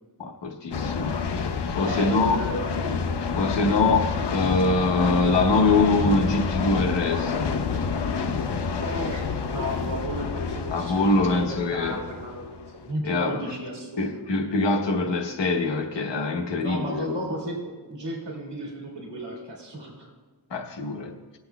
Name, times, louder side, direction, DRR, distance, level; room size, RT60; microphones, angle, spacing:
voice 1, 0.2-1.2 1.7-2.4 3.4-7.6 10.7-12.0 13.0-13.5 14.0-17.2 20.5-21.2, left 3 dB, 90° left, 1.1 m, -24 dB
sound 1, 0.7-12.9, left 5 dB, 70° left, 0.8 m, -28 dB
voice 2, 1.8-2.9 8.7-14.2 16.6-17.6 17.9-20.1, right 1 dB, 75° right, 2.2 m, -34 dB
19.5 x 8.0 x 2.3 m
wide cardioid pair, 85°, 42 cm